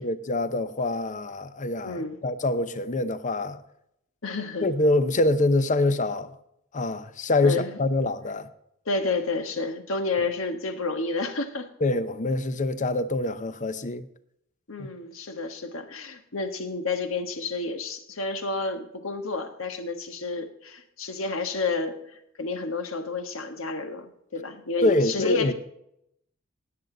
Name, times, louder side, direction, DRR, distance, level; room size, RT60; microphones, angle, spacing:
voice 1, 0.0-3.6 4.6-6.3 6.7-8.5 11.8-14.1 14.8-14.9 24.8-25.5, left 2 dB, 40° left, 0.8 m, -25 dB
voice 2, 1.8-2.2 4.2-4.7 7.4-7.8 8.8-11.7 14.7-25.5, left 3 dB, 70° left, 1.5 m, -30 dB
18.5 x 8.0 x 3.9 m
head